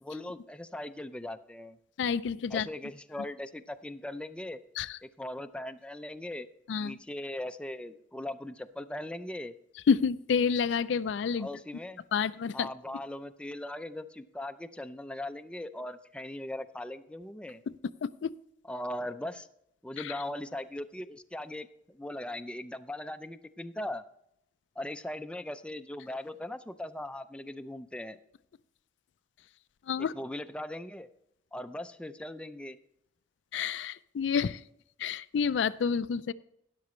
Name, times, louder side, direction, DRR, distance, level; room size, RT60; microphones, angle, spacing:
voice 1, 0.0-1.8 2.5-4.6 5.0-6.5 6.8-9.5 11.4-12.0 12.5-17.6 18.7-19.5 19.8-24.0 24.8-28.2 30.1-31.1 31.5-32.8, left 1 dB, 5° left, 10 dB, 0.4 m, -39 dB
voice 2, 2.0-2.7 4.8-5.0 6.7-7.0 9.9-11.5 12.1-12.7 18.0-18.3 20.0-20.1 29.9-30.1 33.5-34.6 35.0-36.3, left 6 dB, 70° left, 15 dB, 0.4 m, -29 dB
12.5 x 10.5 x 3.1 m, 0.76 s
head